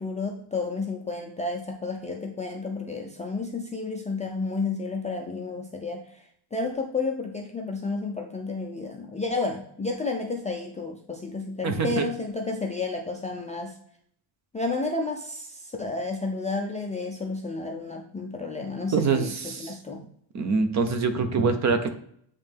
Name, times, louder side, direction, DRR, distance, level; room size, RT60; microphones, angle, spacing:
voice 1, 0.0-6.2 6.5-13.7 14.5-20.0, left 3 dB, 15° left, 0 dB, 0.3 m, -31 dB
voice 2, 11.6-12.1 18.9-19.7 20.3-21.9, right 4 dB, 35° right, 8 dB, 0.6 m, -24 dB
8.7 x 3.2 x 3.4 m, 0.66 s
cardioid pair, 150°, 49 cm